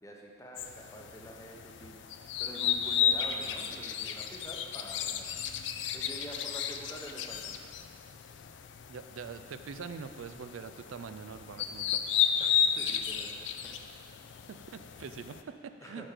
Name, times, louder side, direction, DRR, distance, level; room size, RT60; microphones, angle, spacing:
voice 1, 0.0-2.0 2.4-5.3 5.9-7.7 12.4-13.3 15.8-16.1, equal, 15° left, -1 dB, 0.7 m, -46 dB
sound 1, 0.6-15.4, left 8 dB, 70° left, 0.4 m, -33 dB
voice 2, 8.9-12.3 14.5-16.1, right 6 dB, 85° right, 9 dB, 0.4 m, -44 dB
6.6 x 5.9 x 5.0 m, 2.3 s
head